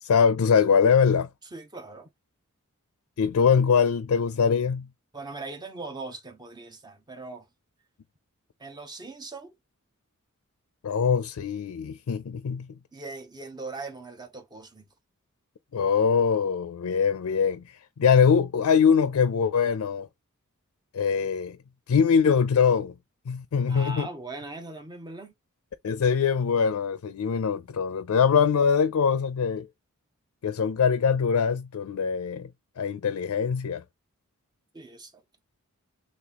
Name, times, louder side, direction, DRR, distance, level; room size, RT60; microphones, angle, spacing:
voice 1, 0.0-1.3 3.2-4.9 10.8-12.8 15.7-20.1 20.9-21.6 21.9-22.9 23.3-24.1 25.8-29.7 30.4-32.5 32.8-33.8, left 6 dB, 90° left, 0.4 m, -23 dB
voice 2, 1.5-2.1 5.1-7.5 8.6-9.5 12.9-14.9 23.7-25.3 34.7-35.2, right 3 dB, 20° right, 0.7 m, -40 dB
3.4 x 3.0 x 3.8 m
head